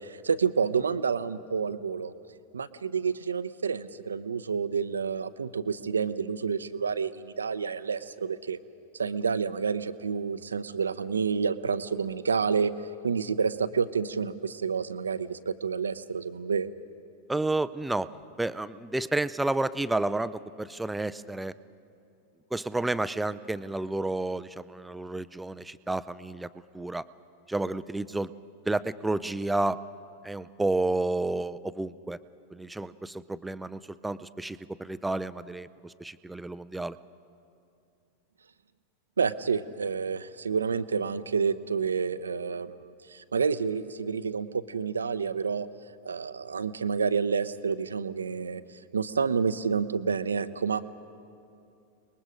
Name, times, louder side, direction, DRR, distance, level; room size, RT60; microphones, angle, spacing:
voice 1, 0.0-2.1 2.5-8.6 8.9-12.7 13.0-16.7 39.2-45.7 46.0-50.8, right 5 dB, 70° right, 14 dB, 0.7 m, -29 dB
voice 2, 17.3-18.1 18.4-21.5 22.5-26.5 26.7-27.0 27.5-28.3 28.7-29.8 30.2-32.2 32.5-37.0, right 2 dB, 5° right, 14 dB, 0.5 m, -31 dB
30.0 x 20.5 x 5.1 m, 2.6 s
figure-of-eight pair, 90°, 0 cm